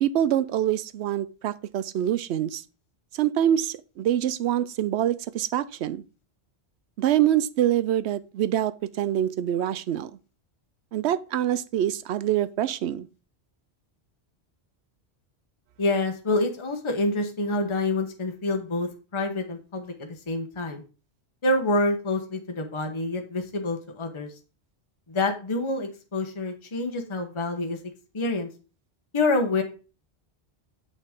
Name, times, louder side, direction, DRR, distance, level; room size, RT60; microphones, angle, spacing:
voice 1, 0.0-2.6 3.1-6.0 7.0-10.1 10.9-13.1, right 11 dB, 85° right, 0.9 m, -25 dB
voice 2, 15.8-20.8 21.4-24.3 25.1-27.8 28.1-28.5 29.1-29.6, left 2 dB, 30° left, 1.0 m, -27 dB
8.1 x 6.0 x 3.5 m
omnidirectional pair, 1.1 m